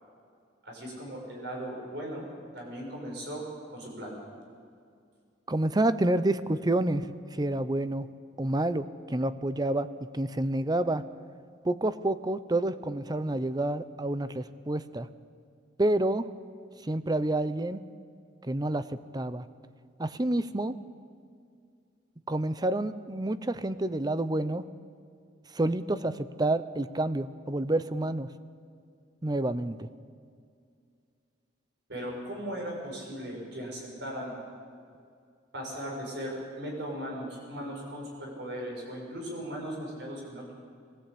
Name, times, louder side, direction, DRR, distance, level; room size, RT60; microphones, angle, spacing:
voice 1, 0.6-2.3 2.5-3.4 3.7-4.1 31.9-34.3 35.5-40.5, equal, 65° right, -1 dB, 6.8 m, -38 dB
voice 2, 5.5-8.1 8.4-9.9 10.1-11.0 11.6-15.1 15.8-16.3 16.8-17.8 18.4-19.5 20.0-20.7 22.3-24.6 25.5-28.3 29.2-29.9, right 1 dB, 20° right, 13 dB, 0.7 m, -28 dB
22.0 x 15.0 x 8.5 m, 2.3 s
head